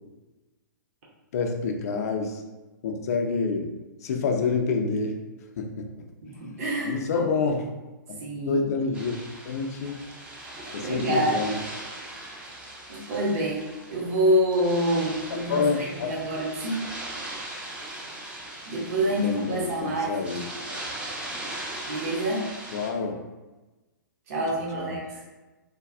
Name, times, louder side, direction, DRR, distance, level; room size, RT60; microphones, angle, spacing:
voice 1, 1.3-2.4 2.8-3.7 4.0-5.1 5.6-5.9 6.8-7.6 8.5-9.2 9.4-10.0 10.7-11.6 15.5-16.1 19.0-20.4 22.7-23.2 24.5-25.0, left 4 dB, 50° left, 4 dB, 0.4 m, -27 dB
voice 2, 6.2-7.2 8.2-8.7 10.7-11.4 12.9-13.6 13.9-16.8 18.7-20.2 21.8-22.5 24.3-25.2, right 1 dB, 45° right, -4 dB, 0.7 m, -27 dB
sound 1, 8.9-22.9, right 1 dB, 10° right, 0.4 m, -39 dB
3.4 x 2.2 x 2.4 m, 1.1 s
figure-of-eight pair, 115°, 11 cm